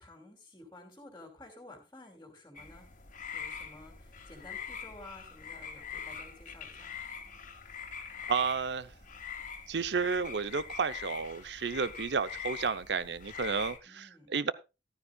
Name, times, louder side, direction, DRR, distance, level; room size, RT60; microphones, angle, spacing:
voice 1, 0.0-2.9 3.3-6.9 13.8-14.3, left 2 dB, 15° left, 1 dB, 2.8 m, -52 dB
sound 1, 2.6-13.8, left 6 dB, 50° left, 1.9 m, -43 dB
voice 2, 8.3-8.9 9.7-14.5, right 5 dB, 80° right, 14 dB, 0.7 m, -32 dB
14.5 x 12.5 x 2.4 m, 0.27 s
head